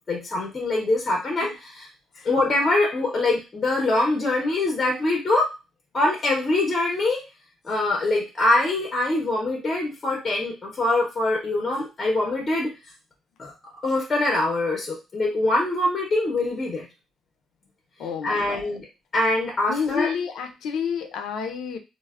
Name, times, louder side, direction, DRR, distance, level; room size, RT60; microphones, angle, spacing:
voice 1, 0.1-1.9 2.2-5.5 5.9-7.2 7.6-12.7 13.4-13.5 13.8-16.9 18.2-18.9 19.1-20.1, left 2 dB, 25° left, -1 dB, 0.6 m, -23 dB
voice 2, 18.0-18.8 19.7-21.8, left 7 dB, 80° left, 6 dB, 0.4 m, -29 dB
3.2 x 2.0 x 2.3 m, 0.28 s
cardioid pair, 135°, 0 cm